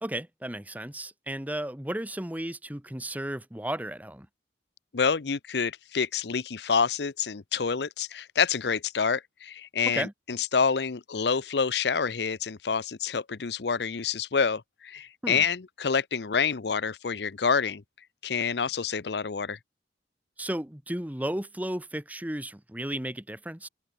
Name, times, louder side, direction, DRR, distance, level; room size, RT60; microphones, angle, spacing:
voice 1, 0.0-4.3 9.9-10.1 15.2-15.4 20.4-23.7, right 1 dB, 10° right, 1.2 m, -34 dB
voice 2, 4.9-17.8 18.2-19.6, left 6 dB, 70° left, 0.7 m, -27 dB
open air
head